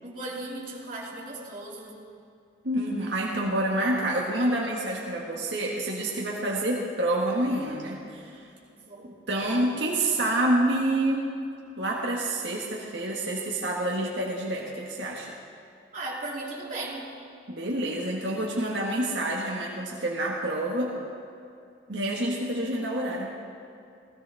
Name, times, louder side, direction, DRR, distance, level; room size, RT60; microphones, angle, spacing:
voice 1, 0.0-2.0 8.7-9.1 15.9-17.1, right 2 dB, 50° right, -5 dB, 2.9 m, -37 dB
voice 2, 2.6-8.4 9.3-11.3 11.8-15.3 17.5-20.9 21.9-23.3, right 1 dB, 85° right, -3 dB, 1.6 m, -28 dB
17.5 x 16.0 x 3.6 m, 2.5 s
head